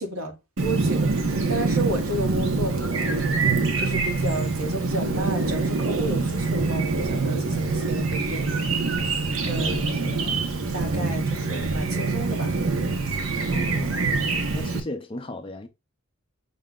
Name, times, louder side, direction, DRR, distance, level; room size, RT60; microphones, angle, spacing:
voice 1, 0.0-3.3 3.8-8.5 9.5-10.2 10.7-12.5, right 1 dB, 85° right, 1.2 m, -32 dB
Chirp tweet, 0.6-14.8, right 3 dB, 65° right, 0.8 m, -25 dB
voice 2, 10.0-10.3 13.5-14.1 14.5-15.7, left 1 dB, 25° left, 0.5 m, -36 dB
5.4 x 2.1 x 3.6 m
head